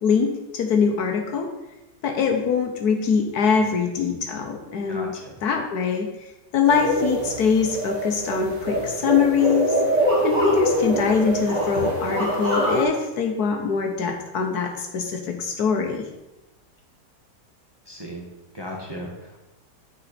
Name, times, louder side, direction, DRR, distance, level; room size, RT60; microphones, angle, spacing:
voice 1, 0.0-1.5 2.0-9.8 10.2-16.1, left 6 dB, 65° left, 4 dB, 1.3 m, -23 dB
voice 2, 4.9-5.4 17.9-18.2 18.5-19.4, equal, 15° right, -2 dB, 1.2 m, -36 dB
sound 1, 6.7-12.8, equal, 40° right, 2.5 m, -24 dB
9.5 x 5.4 x 4.2 m, 0.99 s
omnidirectional pair, 1.9 m